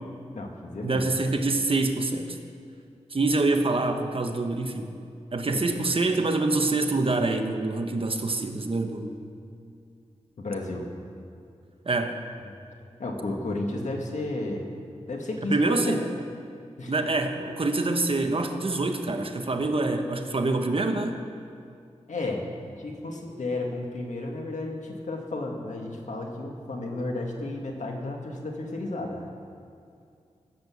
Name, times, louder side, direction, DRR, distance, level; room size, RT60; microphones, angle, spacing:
voice 1, 0.3-1.1 5.5-5.7 10.4-10.9 13.0-14.7 15.1-16.0 16.8-16.9 22.1-22.4 22.8-29.3, left 2 dB, 80° left, 1 dB, 1.8 m, -32 dB
voice 2, 0.8-2.4 3.1-4.9 5.3-9.1 11.8-12.2 15.5-16.0 16.9-21.2, right 2 dB, 50° right, 5 dB, 1.2 m, -25 dB
15.5 x 8.3 x 7.1 m, 2.4 s
wide cardioid pair, 80°, 12 cm